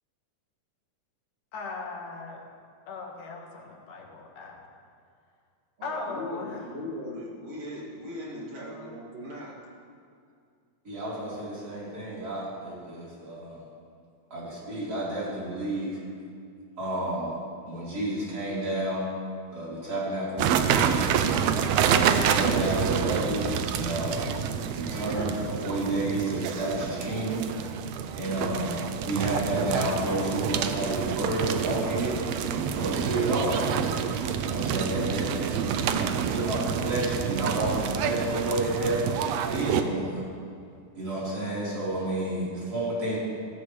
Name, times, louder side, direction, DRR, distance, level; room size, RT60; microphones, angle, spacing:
voice 1, 1.5-2.4 2.9-4.6 5.8-6.6 8.7-8.9, left 3 dB, 80° left, -1 dB, 3.3 m, -38 dB
voice 2, 5.8-9.6 10.9-11.0, left 1 dB, 55° right, -6 dB, 3.8 m, -38 dB
voice 3, 10.8-13.6 14.3-16.0 16.8-17.3 17.6-19.1 19.5-21.2 21.8-24.4 24.7-27.4 28.1-34.0 34.4-40.3 41.0-43.2, right 1 dB, 30° right, -8 dB, 4.6 m, -30 dB
sound 1, 20.4-39.8, right 8 dB, 80° right, 1.5 m, -28 dB
17.0 x 14.5 x 3.3 m, 2.3 s
omnidirectional pair, 3.6 m